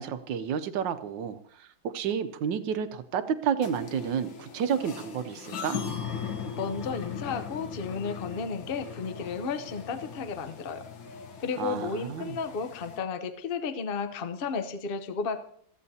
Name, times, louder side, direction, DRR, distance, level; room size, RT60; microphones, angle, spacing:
voice 1, 0.0-5.8 11.6-12.4, right 7 dB, 70° right, 11 dB, 1.4 m, -31 dB
sound 1, 3.6-13.0, left 6 dB, 75° left, 2.0 m, -39 dB
voice 2, 6.6-10.8 11.4-15.4, left 5 dB, 50° left, 9 dB, 0.6 m, -33 dB
20.0 x 14.5 x 2.8 m, 0.67 s
omnidirectional pair, 2.1 m